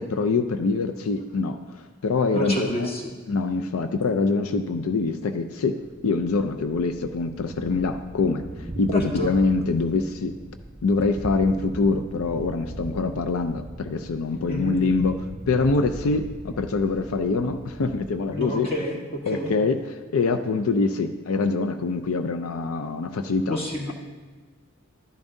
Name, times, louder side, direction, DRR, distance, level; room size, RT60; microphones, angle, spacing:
voice 1, 0.0-2.9 3.3-5.8 6.0-10.3 10.8-15.2 15.5-18.7 19.3-19.8 20.1-23.6, left 3 dB, 90° left, 7 dB, 0.5 m, -24 dB
voice 2, 2.3-3.1 8.9-9.3 14.5-14.8 18.3-19.5 23.5-23.9, equal, 30° left, -1 dB, 1.5 m, -29 dB
Thunder, 5.8-18.4, right 1 dB, 10° right, 0.5 m, -40 dB
12.5 x 10.5 x 2.7 m, 1.4 s
head